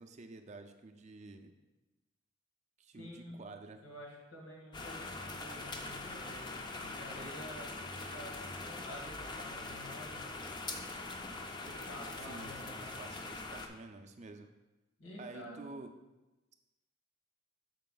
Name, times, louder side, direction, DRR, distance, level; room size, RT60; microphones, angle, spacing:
voice 1, 0.0-1.5 2.8-3.8 12.2-14.5 15.2-15.9, right 3 dB, 35° right, 6 dB, 0.4 m, -50 dB
voice 2, 3.0-3.5 3.8-10.3 11.6-13.0 15.0-15.7, left 1 dB, 90° left, -3 dB, 2.1 m, -50 dB
sound 1, 4.7-13.7, left 2 dB, 20° left, 0.4 m, -43 dB
6.6 x 4.3 x 3.9 m, 1.0 s
head